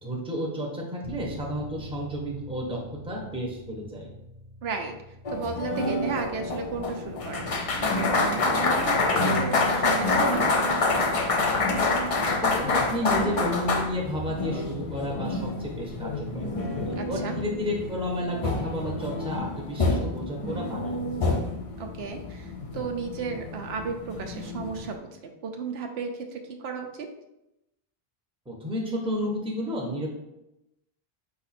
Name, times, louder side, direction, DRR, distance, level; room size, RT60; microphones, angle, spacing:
voice 1, 0.0-4.1 12.2-16.5 16.8-21.0 28.5-30.1, equal, 5° right, -1 dB, 0.7 m, -32 dB
sound 1, 1.0-15.4, equal, 25° right, 0.4 m, -49 dB
voice 2, 4.6-11.2 16.9-17.4 21.8-27.1, right 5 dB, 80° right, 4 dB, 0.9 m, -34 dB
sound 2, 5.2-24.9, left 3 dB, 45° left, 0.5 m, -27 dB
5.0 x 2.5 x 4.1 m, 0.89 s
omnidirectional pair, 1.0 m